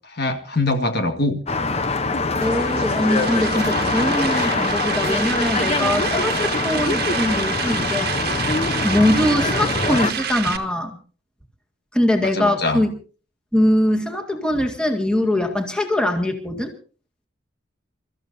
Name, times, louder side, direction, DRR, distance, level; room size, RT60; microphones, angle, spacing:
voice 1, 0.0-1.4 12.2-12.8, left 2 dB, 55° left, 6 dB, 1.7 m, -23 dB
sound 1, 1.5-10.1, left 3 dB, 35° left, 0.8 m, -23 dB
voice 2, 2.4-8.1 8.4-11.0 11.9-12.9 13.5-16.7, left 1 dB, 5° left, 3 dB, 2.0 m, -22 dB
sound 2, 2.4-10.6, right 7 dB, 50° right, 1.5 m, -28 dB
29.0 x 14.0 x 2.7 m, 0.38 s
head